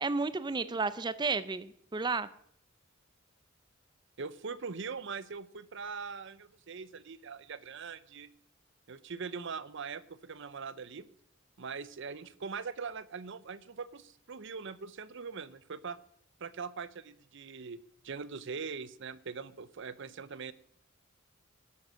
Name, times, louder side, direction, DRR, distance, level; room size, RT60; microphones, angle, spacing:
voice 1, 0.0-2.3, right 4 dB, 20° right, 15 dB, 0.5 m, -32 dB
voice 2, 4.2-8.3 8.9-11.1 11.6-16.0 16.4-17.8 18.0-20.5, right 5 dB, 60° right, 17 dB, 0.7 m, -41 dB
12.5 x 11.0 x 6.4 m, 0.67 s
head